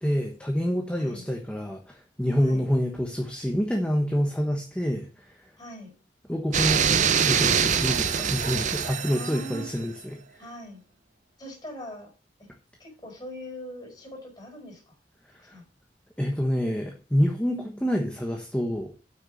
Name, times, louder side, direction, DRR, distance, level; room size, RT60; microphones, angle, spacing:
voice 1, 0.0-5.4 6.3-10.4 15.4-15.6 16.2-18.9, equal, 5° left, 2 dB, 1.1 m, -27 dB
voice 2, 5.6-5.9 9.0-9.7 10.4-10.8 11.4-12.1 12.4-12.5 12.8-14.9 15.4-15.6 17.5-17.8, equal, 25° left, -1 dB, 5.1 m, -42 dB
sound 1, 6.5-9.7, right 7 dB, 40° right, 0.7 m, -24 dB
8.2 x 6.2 x 6.4 m, 0.38 s
head